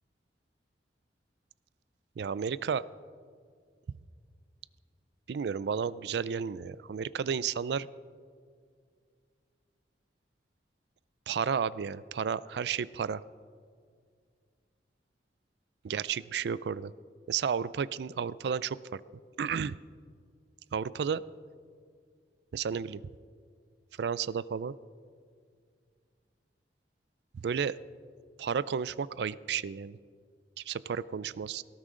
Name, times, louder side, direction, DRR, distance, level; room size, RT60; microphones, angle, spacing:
voice 1, 2.2-2.8 5.3-7.9 11.3-13.2 15.8-16.9 17.3-19.0 19.4-19.7 20.7-21.2 22.5-23.0 24.0-24.7 27.3-27.8 28.4-30.0 30.7-31.6, right 6 dB, 65° right, 19 dB, 0.3 m, -32 dB
18.0 x 13.5 x 3.8 m, 2.1 s
head